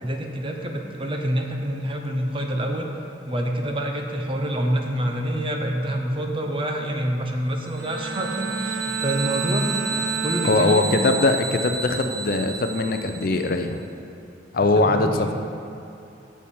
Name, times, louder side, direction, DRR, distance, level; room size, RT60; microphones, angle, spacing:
voice 1, 0.0-2.9 3.3-9.7 10.2-11.0 14.8-15.3, right 1 dB, 25° right, 2 dB, 0.8 m, -27 dB
sound 1, 7.7-13.6, right 4 dB, 45° right, 1.4 m, -32 dB
Bowed string instrument, 7.8-11.3 11.8-12.2, right 5 dB, 65° right, 0.5 m, -31 dB
voice 2, 10.4-13.8 14.5-15.3, left 2 dB, 50° left, 6 dB, 0.5 m, -21 dB
12.0 x 7.2 x 4.3 m, 2.8 s
head